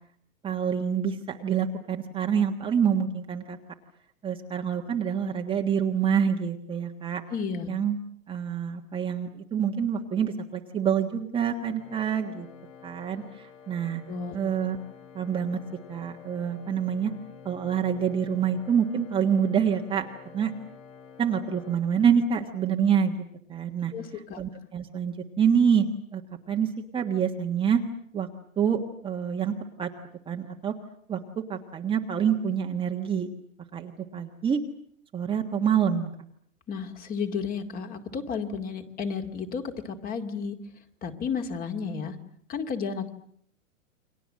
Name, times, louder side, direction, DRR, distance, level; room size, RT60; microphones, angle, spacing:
voice 1, 0.4-3.6 4.2-7.2 7.7-8.0 8.3-12.5 12.8-14.0 14.3-14.8 15.1-15.6 15.9-17.1 17.4-20.1 20.3-20.5 21.2-23.1 23.5-23.9 24.4-25.9 26.1-26.2 26.5-26.7 26.9-27.8 28.1-28.3 28.6-29.9 30.3-30.7 31.1-31.2 31.5-33.3 33.7-34.6 35.1-36.1, right 7 dB, 10° right, 2 dB, 1.4 m, -26 dB
voice 2, 7.3-7.7 14.1-14.4 23.9-24.4 36.7-40.6 41.0-42.2 42.5-43.1, left 6 dB, 20° left, 7 dB, 2.3 m, -32 dB
Organ, 11.7-22.5, left 7 dB, 70° left, 7.3 m, -49 dB
29.5 x 24.0 x 7.6 m, 0.66 s
hypercardioid pair, 145°, 41 cm